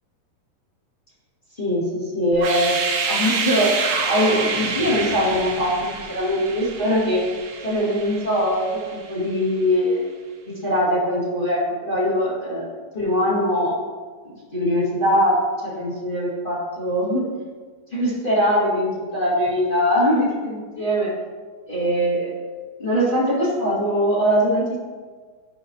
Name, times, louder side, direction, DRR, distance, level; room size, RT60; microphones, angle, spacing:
voice 1, 1.6-2.8 3.1-3.7 4.1-7.2 7.6-8.7 8.9-10.1 10.5-13.8 14.5-17.2 17.9-21.1 21.7-22.3 22.8-24.8, equal, 30° left, -8 dB, 0.9 m, -22 dB
sound 1, 2.3-9.2, right 4 dB, 85° right, 3.3 m, -27 dB
12.5 x 5.0 x 2.9 m, 1.5 s
omnidirectional pair, 4.6 m